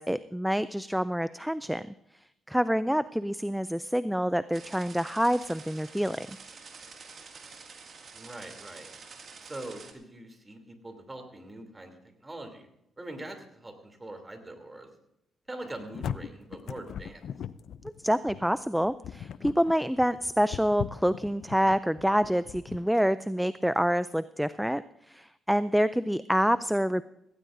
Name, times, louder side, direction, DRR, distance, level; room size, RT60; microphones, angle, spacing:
voice 1, 0.0-1.8 2.5-6.4 18.0-24.8 25.1-27.0, equal, ahead, 15 dB, 0.3 m, -27 dB
sound 1, 4.5-9.9, right 5 dB, 50° right, 2.2 m, -48 dB
voice 2, 8.1-8.9 9.4-12.7 13.0-14.9 15.5-17.2, right 1 dB, 20° right, 5 dB, 2.9 m, -43 dB
sound 2, 15.6-22.8, left 9 dB, 65° left, 0.5 m, -39 dB
17.0 x 16.5 x 2.6 m, 0.82 s
cardioid pair, 90°, 0 cm